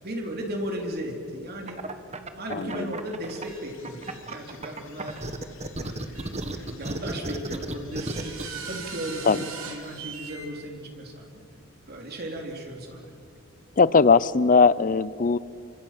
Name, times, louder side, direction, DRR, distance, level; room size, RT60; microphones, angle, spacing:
voice 1, 0.0-1.8 2.4-5.2 5.7-6.2 6.5-11.4 11.9-13.1, right 1 dB, 50° right, 1 dB, 3.6 m, -36 dB
sound 1, 1.7-3.4 3.8-8.5, right 2 dB, 30° right, 1.5 m, -33 dB
voice 2, 2.5-2.9 9.2-9.4 13.8-15.4, left 4 dB, 40° left, 19 dB, 0.6 m, -19 dB
sound 2, 3.3-10.8, left 7 dB, 60° left, 3.1 m, -55 dB
sound 3, 3.5-3.6 4.0-4.2 5.1-5.2 6.1-6.3 6.8-6.9 7.9-10.5, right 5 dB, 75° right, 4.0 m, -39 dB
30.0 x 25.0 x 7.6 m, 2.5 s
head